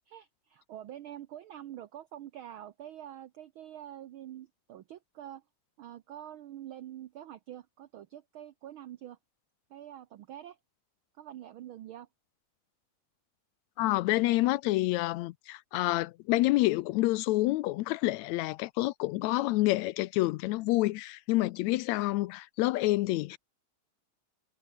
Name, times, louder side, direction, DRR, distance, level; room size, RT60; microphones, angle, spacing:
voice 1, 0.1-5.4 5.8-9.2 9.7-10.6 11.2-12.1, right 11 dB, 85° right, 1.1 m, -46 dB
voice 2, 13.8-23.4, left 18 dB, 80° left, 1.8 m, -28 dB
omnidirectional pair, 3.3 m